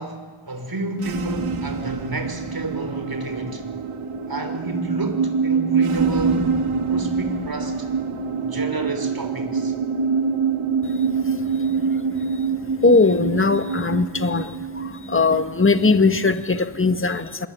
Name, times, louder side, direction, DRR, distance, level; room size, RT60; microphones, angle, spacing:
voice 1, 0.0-3.6 4.3-6.5 6.9-7.9 8.4-9.8, right 2 dB, 45° right, 5.6 m, -30 dB
sound 1, 0.9-16.4, right 5 dB, 80° right, 2.2 m, -25 dB
voice 2, 12.8-14.4 15.1-17.5, left 3 dB, 25° left, 1.8 m, -19 dB
27.0 x 22.5 x 9.6 m
cardioid pair, 40°, 49 cm